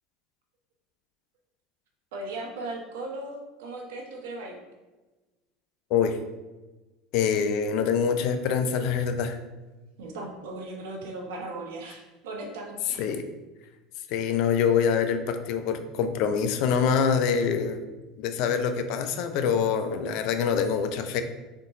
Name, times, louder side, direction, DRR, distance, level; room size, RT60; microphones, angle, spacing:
voice 1, 2.1-4.6 10.0-13.0, right 2 dB, 75° right, 2 dB, 1.0 m, -37 dB
voice 2, 7.1-9.4 13.0-13.2 14.1-17.8 18.2-21.2, left 7 dB, 65° left, 9 dB, 0.5 m, -25 dB
3.7 x 3.7 x 3.8 m, 1.2 s
hypercardioid pair, 80°, 0 cm